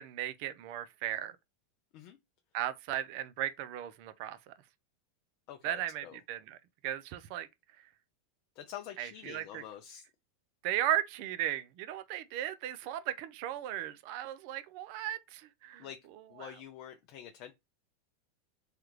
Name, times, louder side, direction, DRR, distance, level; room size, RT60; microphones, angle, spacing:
voice 1, 0.0-1.4 2.5-4.5 5.6-6.6 6.8-7.5 9.0-9.6 10.6-15.9, right 12 dB, 60° right, 0.4 m, -36 dB
voice 2, 5.5-6.2 8.6-10.1 15.8-16.0 16.3-17.5, left 10 dB, 55° left, 0.4 m, -47 dB
3.3 x 2.3 x 3.1 m
hypercardioid pair, 100°, 0 cm